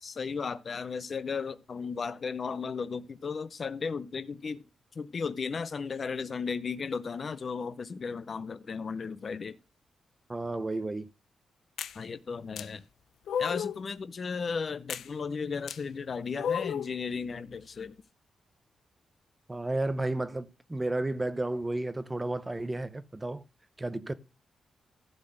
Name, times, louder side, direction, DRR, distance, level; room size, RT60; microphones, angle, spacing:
voice 1, 0.0-4.6 5.0-9.6 11.9-12.8 13.4-17.9, left 5 dB, 35° left, 0.5 m, -35 dB
voice 2, 10.3-11.1 19.5-23.4 23.8-24.1, right 2 dB, 15° right, 0.6 m, -32 dB
sound 1, 11.8-12.0 12.6-12.7 13.3-13.8 14.9-15.1 15.7-15.8 16.4-16.9, left 8 dB, 85° left, 0.5 m, -32 dB
12.0 x 4.1 x 7.8 m
wide cardioid pair, 165°, 0 cm